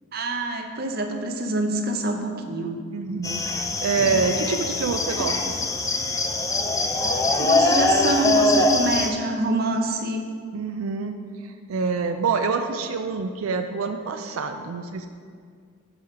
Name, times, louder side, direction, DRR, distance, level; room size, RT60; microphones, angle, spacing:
voice 1, 0.1-2.8 7.4-10.3, right 1 dB, 45° right, 4 dB, 0.6 m, -26 dB
voice 2, 2.9-5.7 10.5-11.2 11.4-15.1, right 4 dB, 85° right, 6 dB, 0.4 m, -26 dB
sound 1, 3.2-9.1, left 2 dB, 15° left, 0.4 m, -23 dB
6.2 x 4.9 x 5.6 m, 2.1 s
head